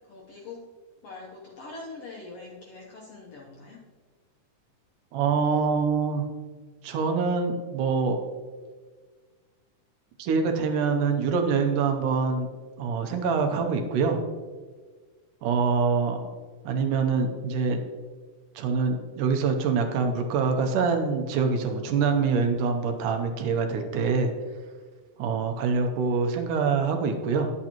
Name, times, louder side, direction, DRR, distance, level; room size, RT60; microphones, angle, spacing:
voice 1, 0.1-0.6 1.0-3.8, left 3 dB, 70° left, -2 dB, 1.4 m, -43 dB
voice 2, 5.1-6.3 6.8-8.2 10.2-12.5 12.8-14.2 15.4-16.2 16.6-17.8 18.6-24.3 25.2-27.5, right 5 dB, 80° right, 4 dB, 2.3 m, -25 dB
11.0 x 8.7 x 2.9 m, 1.4 s
omnidirectional pair, 3.7 m